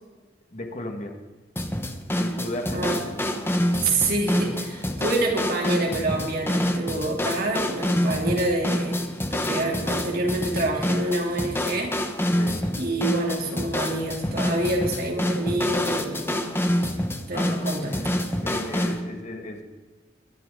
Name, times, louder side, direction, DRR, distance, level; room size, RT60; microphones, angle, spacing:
voice 1, 0.5-1.2 2.1-3.0 3.3-3.5 12.4-12.7 17.3-19.6, left 1 dB, 40° left, 4 dB, 1.8 m, -35 dB
sound 1, 1.6-19.0, equal, 15° left, 1.2 m, -27 dB
voice 2, 3.8-12.0 12.8-16.5 17.3-18.0, right 2 dB, 55° right, 0 dB, 3.2 m, -27 dB
22.5 x 11.5 x 3.9 m, 1.3 s
head